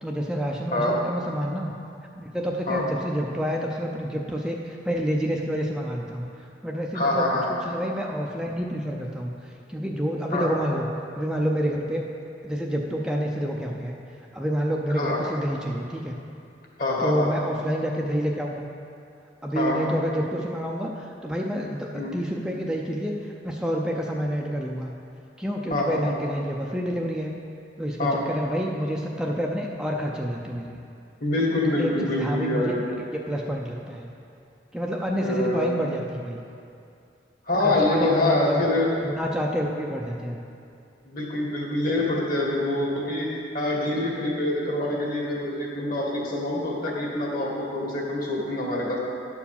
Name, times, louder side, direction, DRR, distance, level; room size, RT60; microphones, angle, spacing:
voice 1, 0.0-1.7 2.2-7.3 7.6-10.9 11.1-12.0 12.4-13.9 14.3-16.2 17.0-18.7 19.4-24.9 25.4-27.3 27.8-30.8 31.8-32.7 33.1-34.1 34.7-36.4 37.6-38.6 39.0-40.4, equal, 5° right, -1 dB, 0.5 m, -28 dB
voice 2, 6.9-7.5 10.3-10.5 14.9-15.2 16.8-17.3 19.6-19.8 21.9-22.2 25.7-26.1 28.0-28.2 31.2-33.0 35.1-35.7 37.5-38.9 41.0-49.0, left 1 dB, 55° left, -3 dB, 1.9 m, -25 dB
10.5 x 4.7 x 7.1 m, 2.6 s
head